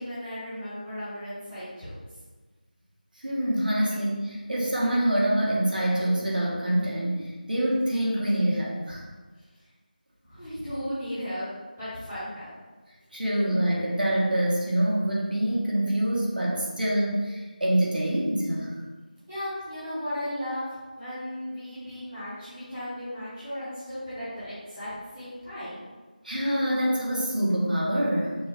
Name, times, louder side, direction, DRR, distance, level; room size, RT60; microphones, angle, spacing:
voice 1, 0.0-1.9 10.2-11.5 11.8-12.5 19.3-20.6 20.9-25.8, equal, 5° right, -21 dB, 1.1 m, -35 dB
voice 2, 3.2-9.0 13.1-18.7 26.2-28.4, right 1 dB, 70° right, -4 dB, 1.4 m, -25 dB
6.0 x 2.6 x 3.3 m, 1.3 s
figure-of-eight pair, 180°, 5 cm